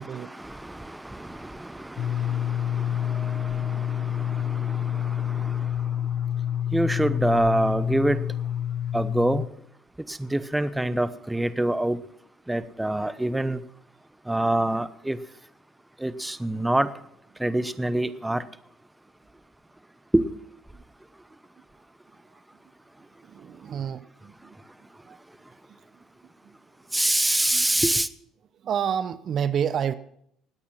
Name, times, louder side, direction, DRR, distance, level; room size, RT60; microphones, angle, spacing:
voice 1, 0.0-5.7 6.7-8.2 8.9-9.4 10.1-12.0 12.5-13.6 14.3-15.2 16.0-16.9 17.4-18.4 20.1-20.3 26.9-28.1, right 1 dB, 10° right, 1.0 m, -26 dB
sound 1, 2.0-9.5, left 10 dB, 55° left, 0.9 m, -28 dB
voice 2, 23.2-24.6 25.1-25.2 25.7-25.8 26.4-26.5 27.5-27.7 28.6-29.9, right 8 dB, 50° right, 0.7 m, -29 dB
19.5 x 8.5 x 5.8 m
supercardioid pair, 70°, 0 cm